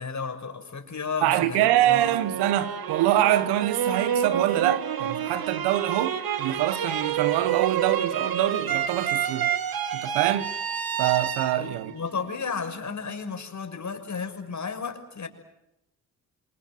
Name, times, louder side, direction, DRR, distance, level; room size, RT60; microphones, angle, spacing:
voice 1, 0.0-2.0 11.6-15.3, left 5 dB, 45° left, 6.5 m, -33 dB
voice 2, 1.2-9.5 9.9-10.5 11.0-11.9, right 13 dB, 90° right, 1.3 m, -25 dB
sound 1, 1.7-12.8, right 9 dB, 65° right, 2.2 m, -28 dB
27.0 x 27.0 x 7.7 m
hypercardioid pair, 45°, 39 cm